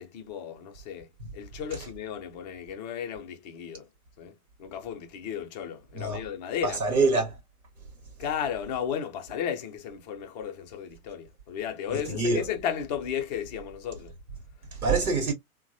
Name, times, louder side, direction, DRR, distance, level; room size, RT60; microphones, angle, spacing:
voice 1, 0.0-3.9 4.2-4.3 4.6-6.8 8.2-14.1, left 8 dB, 30° left, 0.5 m, -34 dB
voice 2, 6.6-7.3 12.1-12.4 14.7-15.3, right 3 dB, 75° right, 0.9 m, -25 dB
2.9 x 2.1 x 2.6 m
figure-of-eight pair, 100°, 44 cm